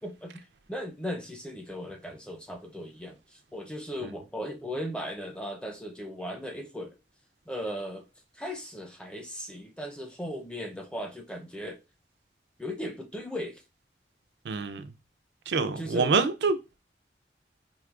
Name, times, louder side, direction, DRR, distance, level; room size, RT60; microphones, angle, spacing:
voice 1, 0.0-7.0 7.5-8.1 8.3-11.8 12.6-13.6 15.6-16.1, equal, 5° left, 0.5 m, -37 dB
voice 2, 14.5-14.8 15.5-16.6, right 4 dB, 80° right, 0.4 m, -26 dB
4.7 x 2.8 x 2.3 m
head